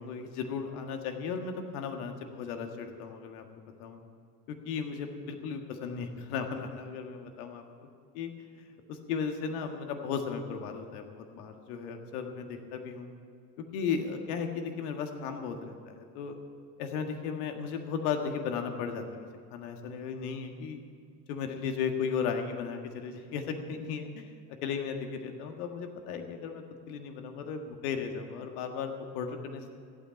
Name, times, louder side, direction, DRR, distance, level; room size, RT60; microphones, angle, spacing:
voice 1, 0.0-3.4 3.8-4.0 4.5-7.6 8.2-13.1 13.7-16.3 16.8-20.8 21.3-24.2 24.6-29.7, left 6 dB, 65° left, 5 dB, 1.9 m, -35 dB
15.5 x 9.0 x 8.9 m, 2.3 s
figure-of-eight pair, 70°, 50 cm